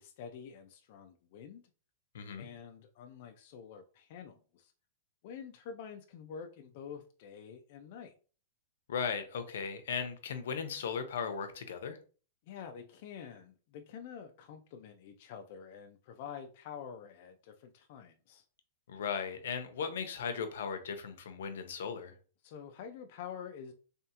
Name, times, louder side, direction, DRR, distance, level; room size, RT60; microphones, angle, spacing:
voice 1, 0.0-1.6 2.4-4.7 5.2-8.1 12.5-18.4 22.4-23.7, left 7 dB, 40° left, 0.4 m, -47 dB
voice 2, 2.1-2.5 8.9-12.0 18.9-22.1, left 6 dB, 75° left, 0.7 m, -37 dB
3.4 x 3.3 x 2.8 m
supercardioid pair, 175°, 0 cm